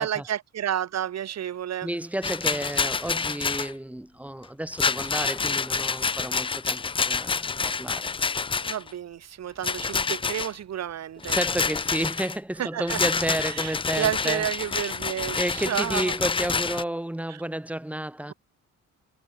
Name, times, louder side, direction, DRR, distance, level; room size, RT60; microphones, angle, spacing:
voice 1, 0.0-1.9 8.6-11.4 12.6-13.0 13.5-16.1 17.3-17.4, right 10 dB, 60° right, 1.7 m, -30 dB
voice 2, 1.8-8.1 11.3-14.8 15.3-18.3, right 1 dB, 5° right, 1.8 m, -31 dB
Rattle, 2.2-3.7 4.7-8.9 9.6-10.5 11.2-12.4 12.9-16.8, left 5 dB, 20° left, 0.4 m, -28 dB
cardioid pair, 90°, 30 cm